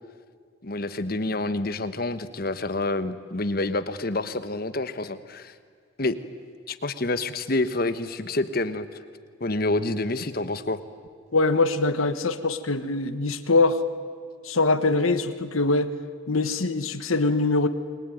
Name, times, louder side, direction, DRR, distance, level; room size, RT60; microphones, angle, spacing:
voice 1, 0.6-5.5 6.0-6.1 6.7-8.9 9.4-10.8, left 2 dB, 45° left, 11 dB, 1.3 m, -28 dB
voice 2, 11.3-13.8 14.4-15.9 16.3-17.7, left 3 dB, 85° left, 11 dB, 1.3 m, -23 dB
29.0 x 22.0 x 9.4 m, 2.1 s
head